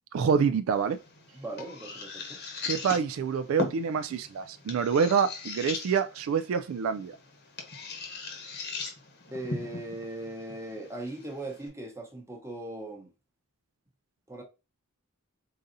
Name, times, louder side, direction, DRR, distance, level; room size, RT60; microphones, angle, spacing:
voice 1, 0.1-1.0 2.6-7.2, right 6 dB, 70° right, 0.3 m, -27 dB
sound 1, 0.7-11.7, left 3 dB, 50° left, 1.0 m, -40 dB
voice 2, 1.3-2.4 9.3-13.1 14.3-14.4, right 1 dB, 10° right, 0.8 m, -39 dB
4.0 x 3.9 x 2.6 m
head